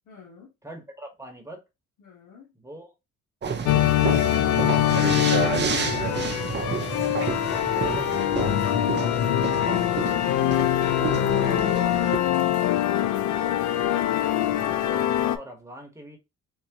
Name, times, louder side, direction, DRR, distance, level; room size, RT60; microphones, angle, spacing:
voice 1, 0.0-0.5 2.0-2.5, left 6 dB, 90° left, 1.4 m, -51 dB
voice 2, 0.6-1.6 2.5-2.9 3.4-4.7 7.0-7.1 7.7-8.6 10.3-12.5 14.7-16.2, right 1 dB, 10° right, 1.2 m, -44 dB
sound 1, 3.4-12.2, right 6 dB, 35° right, 0.6 m, -30 dB
sound 2, 3.7-15.4, left 12 dB, 70° left, 0.5 m, -23 dB
3.5 x 2.8 x 2.9 m
cardioid pair, 90°, 30 cm